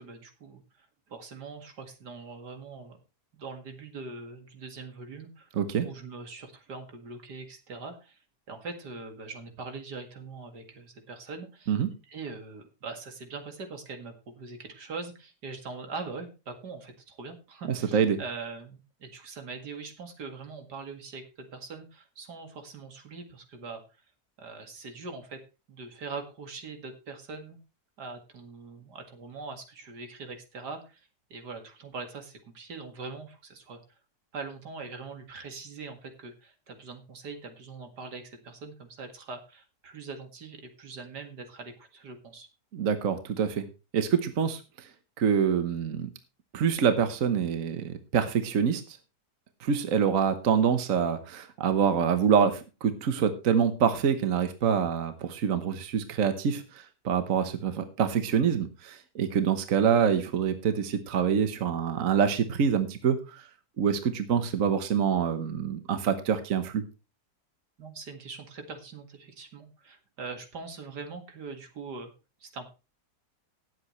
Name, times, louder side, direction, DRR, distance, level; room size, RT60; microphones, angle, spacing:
voice 1, 0.0-3.0 3.3-5.5 5.8-8.2 8.5-11.8 12.1-23.8 24.4-25.4 25.7-27.6 28.0-33.8 34.3-42.5 67.8-72.1 72.4-72.7, right 4 dB, 85° right, 6 dB, 2.6 m, -42 dB
voice 2, 5.6-5.9 11.7-11.9 17.9-18.2 42.7-43.7 43.9-44.6 45.2-46.1 46.5-49.0 49.6-63.4 63.8-66.8, right 7 dB, 55° right, 9 dB, 1.4 m, -26 dB
18.5 x 7.9 x 3.1 m, 0.30 s
omnidirectional pair, 1.7 m